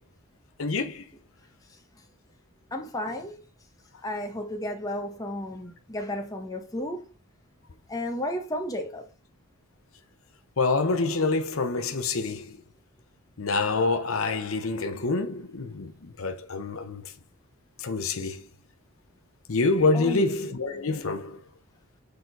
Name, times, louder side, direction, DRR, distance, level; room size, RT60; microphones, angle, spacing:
voice 1, 0.6-1.0 10.6-12.6 13.4-17.1 17.8-18.4 19.5-21.4, left 3 dB, 65° left, 0.8 m, -26 dB
voice 2, 2.7-3.4 4.0-7.0 7.9-9.0 19.9-20.3 20.7-20.8, left 1 dB, 15° left, 1.3 m, -33 dB
6.8 x 4.0 x 4.7 m
head